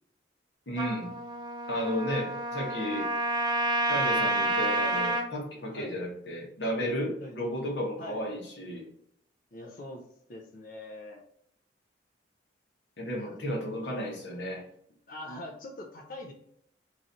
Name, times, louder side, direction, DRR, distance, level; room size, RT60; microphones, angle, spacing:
voice 1, 0.7-1.1 1.7-3.1 3.9-8.8 13.0-14.6, equal, 65° left, -2 dB, 1.2 m, -33 dB
Trumpet, 0.8-5.3, right 2 dB, 25° right, 0.4 m, -29 dB
voice 2, 9.5-11.2 13.2-13.3 15.1-16.3, left 1 dB, 45° left, 1 dB, 0.5 m, -43 dB
3.0 x 2.6 x 3.9 m, 0.69 s
head